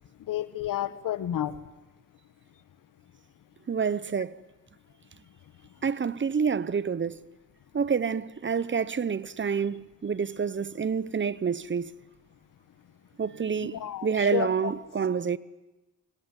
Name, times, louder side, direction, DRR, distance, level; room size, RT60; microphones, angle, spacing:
voice 1, 0.3-1.6 13.7-14.7, left 11 dB, 90° left, 1.1 m, -31 dB
voice 2, 3.7-4.4 5.8-7.2 7.7-11.9 13.2-15.4, right 6 dB, 35° right, 0.8 m, -28 dB
24.0 x 20.0 x 9.9 m
cardioid pair, 90°, 32 cm